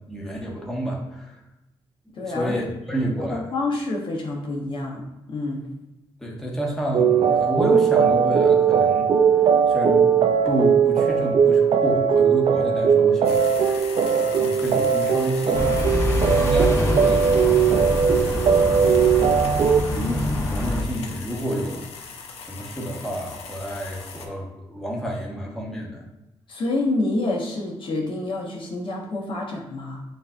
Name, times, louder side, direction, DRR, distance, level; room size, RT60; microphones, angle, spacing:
voice 1, 0.1-1.4 2.2-3.5 6.2-9.0 9.7-10.0 10.4-13.8 14.1-18.0 18.4-19.1 19.9-21.8 22.4-26.0, equal, 5° left, -3 dB, 1.2 m, -29 dB
voice 2, 2.1-2.6 3.3-5.7 26.5-30.0, left 2 dB, 55° left, -2 dB, 1.0 m, -28 dB
sound 1, 6.9-19.8, right 7 dB, 55° right, 0.4 m, -19 dB
sound 2, 13.2-24.3, left 5 dB, 85° left, 0.6 m, -39 dB
sound 3, 15.5-20.8, left 1 dB, 30° left, 1.2 m, -25 dB
7.4 x 2.7 x 2.3 m, 0.95 s
cardioid pair, 75°, 10 cm